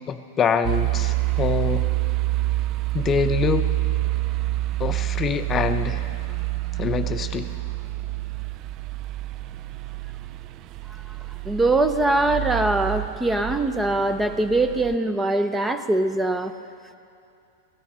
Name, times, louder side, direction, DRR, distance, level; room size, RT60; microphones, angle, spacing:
voice 1, 0.0-1.8 2.9-3.7 4.8-6.2 6.8-7.5, left 6 dB, 25° left, 8 dB, 0.7 m, -25 dB
sound 1, 0.6-15.0, right 18 dB, 40° right, 0.3 m, -27 dB
voice 2, 11.5-16.5, right 2 dB, 10° right, 9 dB, 0.7 m, -22 dB
16.5 x 14.0 x 5.5 m, 2.5 s
hypercardioid pair, 105°, 0 cm